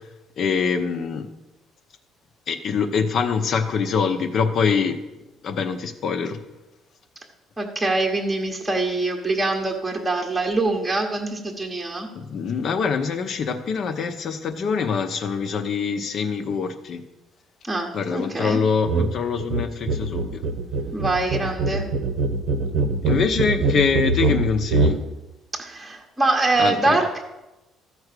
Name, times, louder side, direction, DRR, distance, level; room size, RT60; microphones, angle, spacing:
voice 1, 0.4-1.3 2.5-5.0 5.4-6.4 12.1-17.0 17.9-20.4 23.0-25.0 26.6-27.0, left 5 dB, 40° left, 8 dB, 0.8 m, -24 dB
voice 2, 7.6-12.1 17.6-18.6 20.9-21.9 25.6-27.2, right 2 dB, 10° right, 0 dB, 1.0 m, -24 dB
sound 1, 18.9-19.1 19.4-25.0, right 3 dB, 70° right, 0.9 m, -23 dB
14.0 x 4.8 x 6.6 m, 0.98 s
cardioid pair, 170°, 0 cm